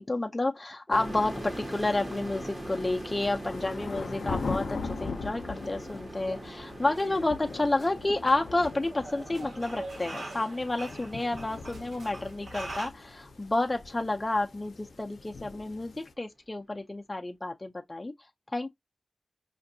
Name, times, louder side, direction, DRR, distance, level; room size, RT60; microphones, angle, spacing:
voice 1, 0.0-18.1 18.5-18.7, left 2 dB, 30° left, 0.4 m, -30 dB
sound 1, 0.9-16.1, left 4 dB, 90° left, 0.5 m, -41 dB
sound 2, 0.9-14.4, right 1 dB, 30° right, 1.3 m, -43 dB
sound 3, 5.5-12.9, right 2 dB, 90° right, 1.7 m, -44 dB
5.0 x 2.6 x 2.6 m
wide cardioid pair, 65°, 0 cm